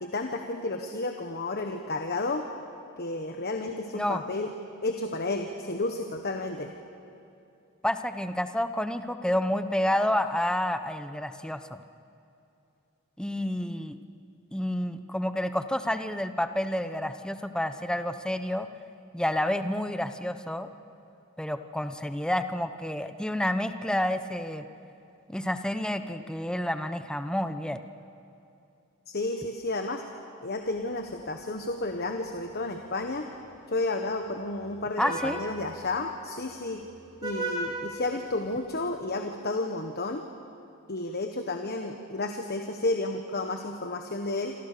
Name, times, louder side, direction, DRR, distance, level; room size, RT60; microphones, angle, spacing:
voice 1, 0.0-2.4 3.0-4.5 4.8-6.7 29.1-30.0 30.4-33.2 33.7-36.8 37.2-40.2 40.9-44.5, left 2 dB, 50° left, 5 dB, 1.3 m, -31 dB
voice 2, 7.8-11.8 13.2-14.0 14.5-18.7 19.1-20.7 21.4-24.6 25.3-27.8 35.0-35.4, left 1 dB, 5° left, 9 dB, 0.9 m, -29 dB
Vehicle horn car horn honking, 30.7-38.8, right 2 dB, 20° right, 6.6 m, -40 dB
27.5 x 27.0 x 6.8 m, 2.7 s
head